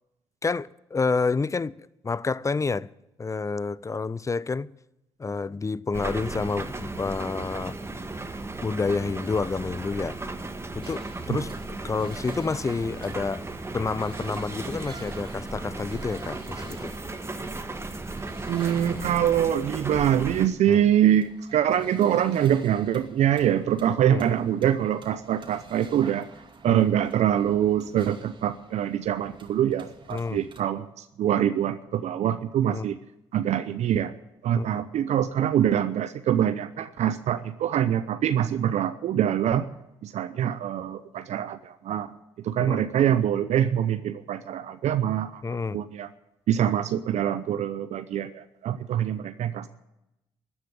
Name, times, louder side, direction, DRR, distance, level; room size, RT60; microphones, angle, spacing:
voice 1, 0.4-1.8 2.0-2.9 3.2-4.7 5.2-7.8 8.6-10.2 10.7-13.4 13.7-16.9 20.7-20.8 24.1-24.2 26.7-26.8 30.1-30.4 32.6-32.9 34.5-34.8 42.6-42.9 45.4-45.8, left 4 dB, 25° left, 0.5 m, -29 dB
sound 1, 5.9-20.5, right 2 dB, 20° right, 1.5 m, -35 dB
sound 2, 10.8-30.6, right 4 dB, 40° right, 2.6 m, -49 dB
voice 2, 18.5-26.3 26.6-33.0 33.3-34.1 34.4-39.7 40.0-42.1 42.4-45.4 45.7-46.1 46.5-49.7, right 10 dB, 65° right, 0.7 m, -24 dB
13.5 x 9.7 x 9.3 m
hypercardioid pair, 50°, 13 cm